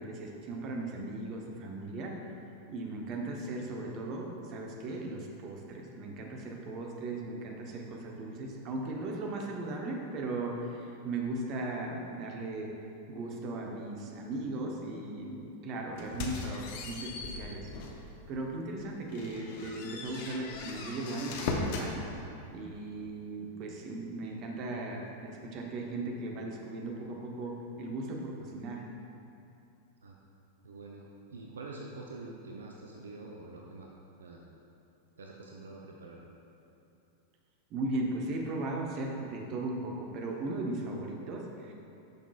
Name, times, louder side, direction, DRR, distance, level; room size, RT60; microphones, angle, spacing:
voice 1, 0.0-2.2 2.7-12.7 13.1-17.7 18.3-22.0 22.5-28.9 37.7-41.7, right 2 dB, 40° right, 0 dB, 0.9 m, -37 dB
sound 1, 16.0-18.1 18.5-18.7 19.1-21.9, left 3 dB, 50° left, 0.7 m, -38 dB
voice 2, 30.6-33.9 34.2-34.4 35.2-36.3, right 2 dB, 70° right, -1 dB, 0.6 m, -46 dB
10.5 x 6.1 x 2.4 m, 2.8 s
figure-of-eight pair, 90°, 0 cm